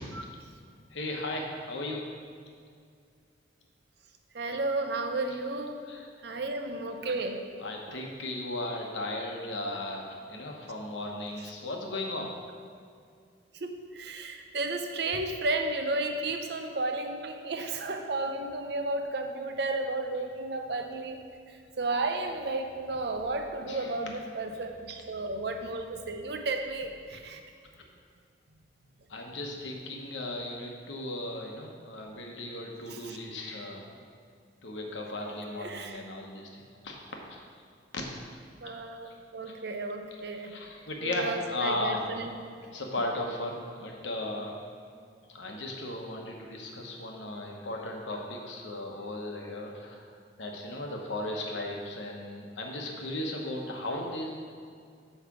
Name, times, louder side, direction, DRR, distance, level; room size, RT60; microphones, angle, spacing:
voice 1, 0.9-2.0 5.9-6.1 7.6-12.3 23.7-23.9 27.1-27.2 29.1-33.9 34.6-37.0 37.3-37.4 37.9-38.1 39.1-39.2 39.5-39.6 40.3-42.1 42.7-44.5 45.3-54.3, left 1 dB, 75° left, 1 dB, 1.0 m, -36 dB
voice 2, 4.3-5.9 6.2-7.5 7.9-8.0 13.5-27.4 32.9-33.2 35.6-36.0 38.6-40.6 41.0-42.3, right 2 dB, 55° right, 5 dB, 0.6 m, -33 dB
8.3 x 3.2 x 6.0 m, 2.3 s
head